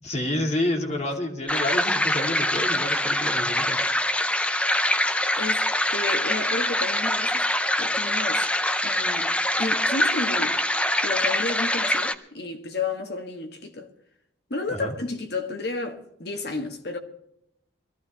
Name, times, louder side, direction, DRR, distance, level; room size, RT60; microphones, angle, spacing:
voice 1, 0.0-3.8 14.7-14.9, left 1 dB, 35° left, 2.3 m, -29 dB
sound 1, 1.5-12.1, left 1 dB, 5° left, 0.5 m, -24 dB
voice 2, 5.3-7.5 7.8-8.5 8.8-10.6 11.0-13.9 14.5-17.0, left 3 dB, 60° left, 1.6 m, -32 dB
22.0 x 14.5 x 3.0 m
head